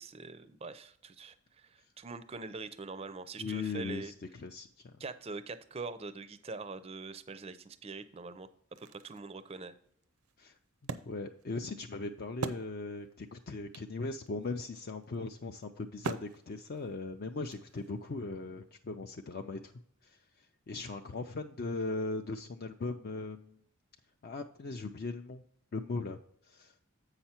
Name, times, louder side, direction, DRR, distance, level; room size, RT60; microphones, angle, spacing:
voice 1, 0.0-4.1 5.0-8.5 8.8-9.7, right 3 dB, 25° right, 13 dB, 0.4 m, -43 dB
voice 2, 3.4-4.9 10.4-10.5 11.0-19.7 20.0-23.6 24.2-25.4 25.7-26.7, left 3 dB, 45° left, 5 dB, 0.4 m, -39 dB
Wood, 8.5-13.2 13.5-13.6 13.7-18.1, right 4 dB, 85° right, 0.6 m, -44 dB
8.0 x 5.7 x 4.3 m, 0.65 s
head